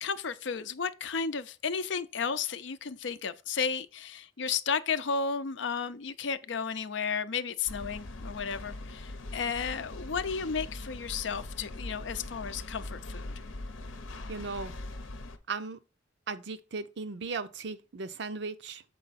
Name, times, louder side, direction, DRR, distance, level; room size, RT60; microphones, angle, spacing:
voice 1, 0.0-13.3, left 6 dB, 65° left, 0.5 m, -33 dB
sound 1, 7.7-15.4, left 2 dB, 90° left, 0.8 m, -41 dB
voice 2, 14.3-14.7 15.5-15.8 16.3-18.8, right 4 dB, 60° right, 0.6 m, -37 dB
6.9 x 4.6 x 4.1 m
head